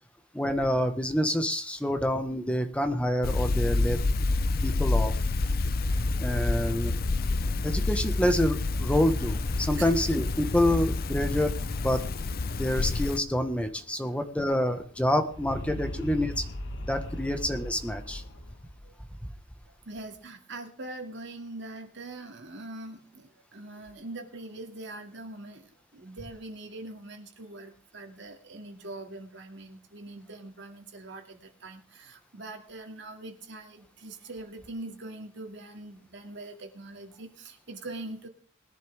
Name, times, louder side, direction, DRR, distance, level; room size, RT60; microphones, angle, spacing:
voice 1, 0.3-4.0 4.6-5.1 6.2-7.0 7.6-11.5 11.8-12.0 12.5-16.4 16.9-18.2, left 1 dB, 5° left, 7 dB, 1.3 m, -27 dB
sound 1, 3.2-13.2, left 3 dB, 50° left, 0.6 m, -28 dB
sound 2, 8.6-14.0 14.2-14.3 14.6-18.9, left 1 dB, 65° left, 1.4 m, -40 dB
voice 2, 19.9-38.3, right 2 dB, 65° right, 3 dB, 2.4 m, -43 dB
20.5 x 10.5 x 3.5 m, 0.40 s
head